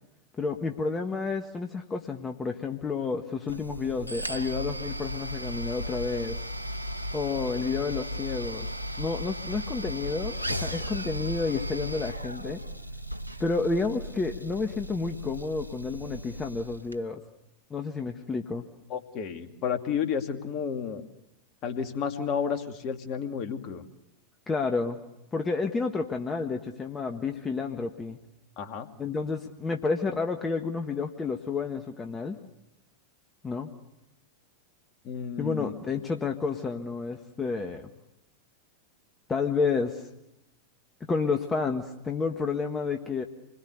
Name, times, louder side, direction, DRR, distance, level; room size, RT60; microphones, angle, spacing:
voice 1, 0.4-6.4 7.1-8.7 9.0-12.6 13.4-17.2 17.7-18.6 24.5-25.0 25.3-28.2 29.0-32.4 33.4-33.7 35.4-37.9 39.3-40.1 41.1-43.2, left 4 dB, 15° left, 4 dB, 1.6 m, -30 dB
sound 1, 3.5-17.0, equal, 90° left, 0.9 m, -36 dB
voice 2, 18.9-21.0 21.6-23.8 28.6-28.9 35.0-35.7, left 7 dB, 40° left, 7 dB, 2.4 m, -31 dB
28.0 x 21.5 x 8.2 m, 0.86 s
figure-of-eight pair, 90°, 0 cm